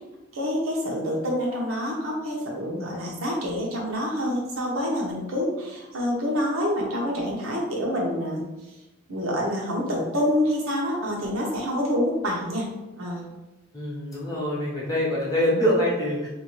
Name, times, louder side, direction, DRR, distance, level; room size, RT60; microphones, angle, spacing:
voice 1, 0.3-8.4 9.1-12.7 13.0-13.3, equal, 85° right, -2 dB, 0.8 m, -27 dB
voice 2, 13.7-16.3, equal, 15° left, -5 dB, 0.7 m, -24 dB
2.6 x 2.3 x 3.1 m, 1.0 s
head